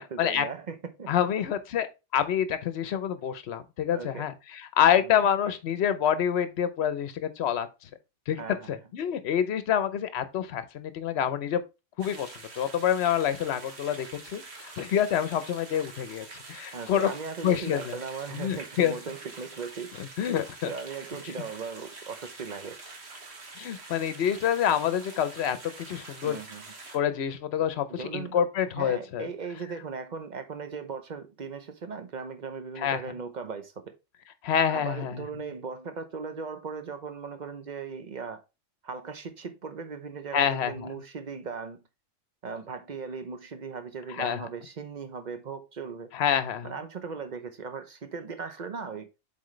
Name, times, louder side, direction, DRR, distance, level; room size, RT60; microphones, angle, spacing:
voice 1, 0.0-1.1 3.9-4.3 5.0-5.2 8.4-8.8 16.7-19.9 20.6-22.8 26.2-26.7 27.9-28.4 28.7-33.7 34.7-38.4 38.8-41.8 42.4-46.1 46.6-49.1, right 5 dB, 40° right, 0.8 m, -38 dB
voice 2, 1.1-1.9 2.1-4.3 4.8-7.7 8.3-8.4 8.7-11.6 12.0-12.3 12.5-17.1 17.4-17.9 18.3-18.9 20.2-20.7 23.6-25.6 25.9-26.3 26.9-27.9 28.1-29.3 32.8-33.0 34.4-35.1 40.3-40.7 44.2-44.4 46.1-46.7, left 9 dB, 60° left, 0.9 m, -27 dB
sound 1, 12.0-27.0, right 3 dB, 60° right, 1.5 m, -46 dB
7.7 x 3.9 x 3.1 m
omnidirectional pair, 1.3 m